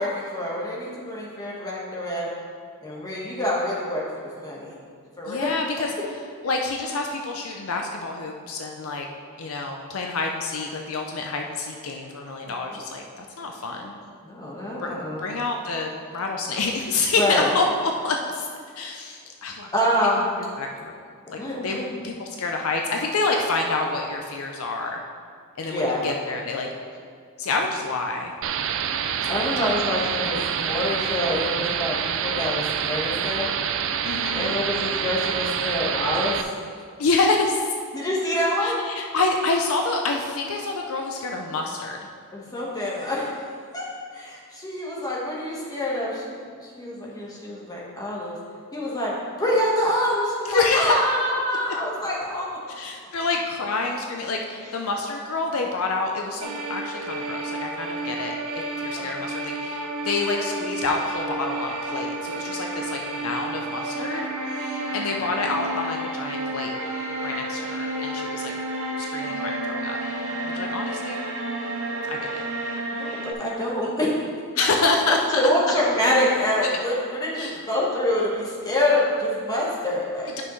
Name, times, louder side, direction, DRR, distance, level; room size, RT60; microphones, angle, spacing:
voice 1, 0.0-2.3 2.8-4.0 4.3-4.8 5.2-5.5 12.5-12.8 13.6-13.9 14.2-15.3 17.1-17.5 19.7-20.3 21.4-21.9 25.6-26.0 29.3-33.5 33.8-33.9 34.3-36.6 37.9-38.8 42.3-43.4 43.7-43.8 44.1-48.4 48.7-52.5 54.6-54.7 59.0-59.1 62.3-62.4 70.4-70.5 71.7-71.9 72.9-74.1 75.1-80.4, left 1 dB, 15° left, -5 dB, 1.4 m, -26 dB
voice 2, 5.3-5.9 6.4-9.1 9.4-14.0 14.8-14.9 15.2-18.5 18.8-19.7 20.6-20.9 21.3-25.0 25.6-26.7 27.4-28.3 29.6-30.0 34.0-34.6 37.0-37.7 38.6-42.0 50.5-50.9 52.8-64.3 64.9-66.7 67.2-68.5 69.0-70.0 70.5-71.2 72.1-72.4 74.6-75.4 76.6-76.7 77.4-77.6, left 3 dB, 65° left, 2 dB, 0.6 m, -27 dB
sound 1, 28.4-36.4, right 8 dB, 60° right, 0.4 m, -27 dB
sound 2, 56.4-73.3, right 2 dB, 85° right, 0.9 m, -31 dB
10.5 x 5.6 x 3.2 m, 2.1 s
head